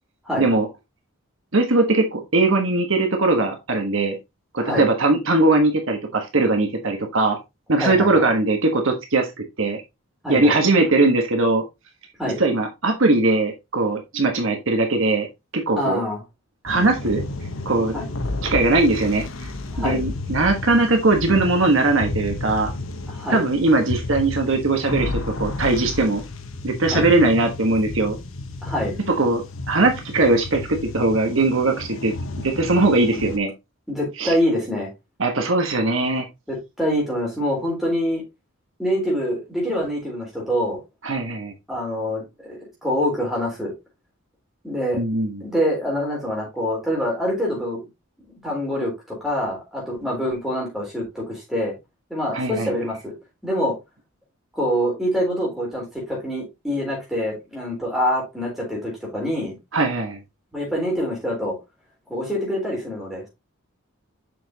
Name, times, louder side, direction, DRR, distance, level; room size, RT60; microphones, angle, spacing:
voice 1, 1.5-4.2 4.5-7.4 7.7-9.3 9.6-9.8 10.3-11.6 12.4-15.3 15.5-16.0 16.6-17.2 17.6-17.9 18.4-19.2 19.8-22.7 23.3-26.2 26.6-28.2 29.2-33.5 34.2-34.3 35.2-36.3 41.0-41.5 45.0-45.4 52.3-52.7 59.7-60.2, right 2 dB, 65° right, 4 dB, 1.3 m, -20 dB
voice 2, 7.8-8.3 10.2-10.6 12.2-12.4 15.7-16.2 17.9-18.1 19.7-20.0 23.1-23.5 26.9-27.1 28.6-29.0 33.9-34.9 36.5-38.2 38.8-40.8 41.7-43.7 44.6-45.0 45.4-47.9 48.4-51.8 52.1-53.1 53.4-53.8 54.6-59.6 60.5-61.6 62.1-63.3, equal, ahead, -3 dB, 3.8 m, -25 dB
sound 1, 16.7-33.4, left 2 dB, 70° left, 1.0 m, -32 dB
7.1 x 5.9 x 2.8 m, 0.22 s
head